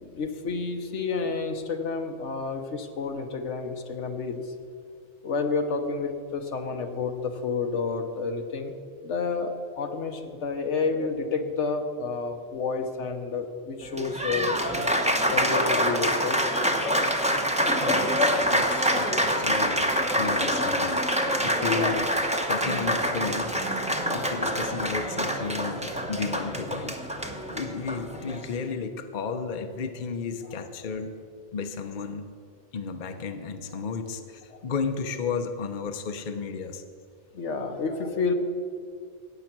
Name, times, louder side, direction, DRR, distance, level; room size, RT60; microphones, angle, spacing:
voice 1, 0.0-4.4 5.2-8.7 9.0-14.6 15.3-16.4 18.7-18.9 21.7-22.0 34.5-34.7 37.3-38.3, left 4 dB, 80° left, 5 dB, 1.4 m, -30 dB
Applause, 13.8-28.5, equal, 5° right, 0.9 m, -26 dB
voice 2, 17.7-22.1 22.5-23.8 24.1-27.1 27.5-31.1 31.5-32.3 32.7-36.8, left 5 dB, 45° left, 7 dB, 0.9 m, -33 dB
15.0 x 9.0 x 6.0 m, 2.2 s
omnidirectional pair, 1.2 m